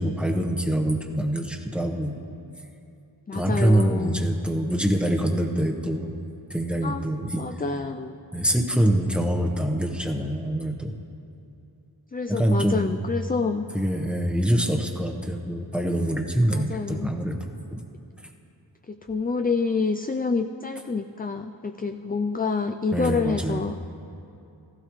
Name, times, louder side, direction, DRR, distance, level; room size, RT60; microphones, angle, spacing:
voice 1, 0.0-2.2 3.3-6.1 6.5-7.4 8.3-10.9 12.3-12.9 13.7-17.8 22.9-23.6, right 1 dB, ahead, 2 dB, 1.2 m, -25 dB
voice 2, 3.3-4.3 6.8-7.0 7.4-8.2 12.1-13.7 16.5-17.1 18.9-23.8, left 4 dB, 20° left, 7 dB, 0.4 m, -27 dB
16.0 x 14.5 x 3.2 m, 2.7 s
wide cardioid pair, 40°, 43 cm